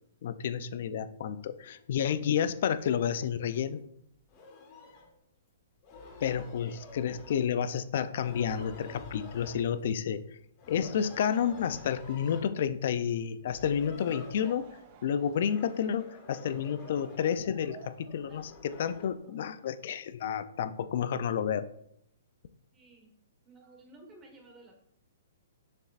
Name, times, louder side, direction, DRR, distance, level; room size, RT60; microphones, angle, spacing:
voice 1, 0.2-3.8 6.2-10.2 10.7-14.7 15.0-21.6, left 8 dB, 55° left, 13 dB, 0.4 m, -30 dB
sound 1, 1.6-1.8 2.7-2.9 3.4-3.7 4.1-5.1 5.7-7.7 8.1-10.0 10.6-12.6 13.4-14.9 15.3-17.5 18.1-19.1, left 3 dB, 30° left, 1.4 m, -50 dB
Laughter / Crowd, 13.8-20.2, right 6 dB, 35° right, 0.6 m, -56 dB
voice 2, 22.7-23.1 23.4-24.8, right 2 dB, 15° right, 1 dB, 1.5 m, -55 dB
6.9 x 6.7 x 2.5 m, 0.73 s
hypercardioid pair, 160°, 0 cm